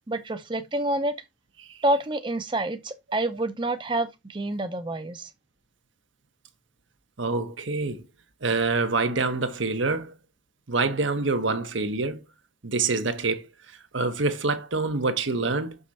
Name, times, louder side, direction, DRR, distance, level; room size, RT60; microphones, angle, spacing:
voice 1, 0.1-1.1 1.8-5.3, right 1 dB, 25° right, 0.6 m, -28 dB
voice 2, 7.2-8.0 8.4-10.1 10.7-12.2 12.6-15.8, right 3 dB, 85° right, 1.2 m, -26 dB
6.4 x 5.4 x 4.2 m
head